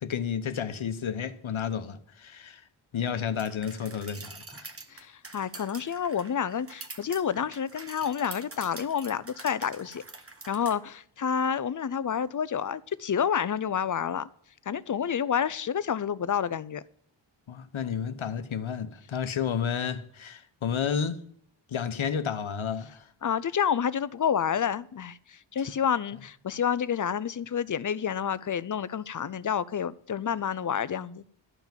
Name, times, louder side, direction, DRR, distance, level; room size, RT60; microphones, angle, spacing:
voice 1, 0.0-2.6 2.9-4.7 5.3-5.4 17.5-21.2 21.7-23.1, left 7 dB, 80° left, 1.0 m, -31 dB
sound 1, 3.4-10.8, right 3 dB, 30° right, 1.2 m, -45 dB
voice 2, 4.9-10.0 10.5-14.3 14.7-16.8 23.2-31.2, left 8 dB, 40° left, 0.5 m, -29 dB
12.5 x 5.9 x 9.0 m
wide cardioid pair, 115°, 47 cm